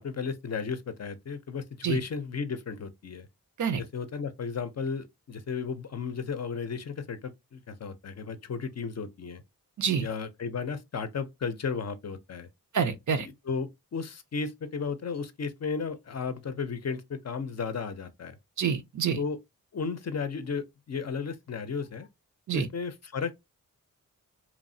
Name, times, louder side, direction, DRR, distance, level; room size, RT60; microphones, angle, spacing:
voice 1, 0.0-3.3 3.8-9.4 10.0-12.5 13.2-18.4 19.2-19.4 19.7-22.1 22.5-23.4, left 5 dB, 50° left, 0.5 m, -34 dB
voice 2, 12.7-13.3 18.6-19.2 22.5-22.7, right 7 dB, 60° right, 0.5 m, -27 dB
3.0 x 2.0 x 2.6 m
cardioid pair, 60°, 35 cm